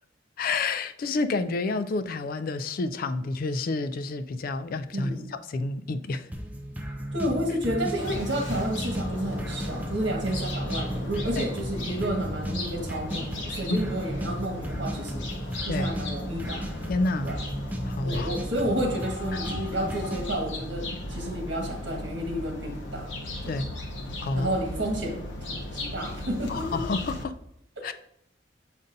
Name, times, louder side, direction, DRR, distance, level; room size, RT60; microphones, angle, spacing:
voice 1, 0.4-6.3 11.4-11.5 13.7-13.8 15.7-15.9 16.9-17.3 17.8-18.3 19.3-19.4 19.8-19.9 23.5-23.7 24.2-24.5 26.5-27.3 27.8-27.9, left 3 dB, 50° left, 12 dB, 0.4 m, -29 dB
voice 2, 4.9-5.3 7.1-15.2 15.7-16.7 17.2-17.4 18.0-23.1 23.4-23.6 24.3-25.2 25.5-26.8, right 1 dB, 70° right, 1 dB, 1.5 m, -31 dB
sound 1, 6.3-20.3, equal, 10° right, 0.6 m, -35 dB
sound 2, 8.0-27.2, left 1 dB, 75° left, 0.9 m, -36 dB
7.0 x 5.2 x 2.6 m, 0.74 s
head